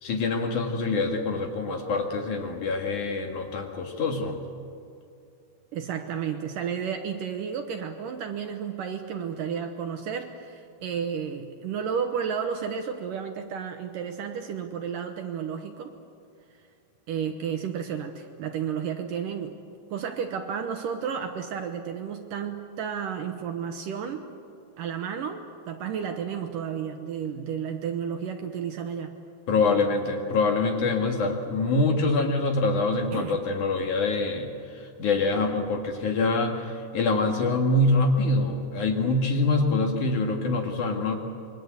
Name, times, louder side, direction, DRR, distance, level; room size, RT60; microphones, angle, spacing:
voice 1, 0.0-4.4 29.5-41.2, left 3 dB, 55° left, 3 dB, 3.0 m, -25 dB
voice 2, 5.7-15.9 17.1-19.6 19.9-24.3 24.8-29.1 33.1-33.4, right 7 dB, 70° right, 6 dB, 2.3 m, -32 dB
27.0 x 22.5 x 8.2 m, 2.4 s
omnidirectional pair, 4.7 m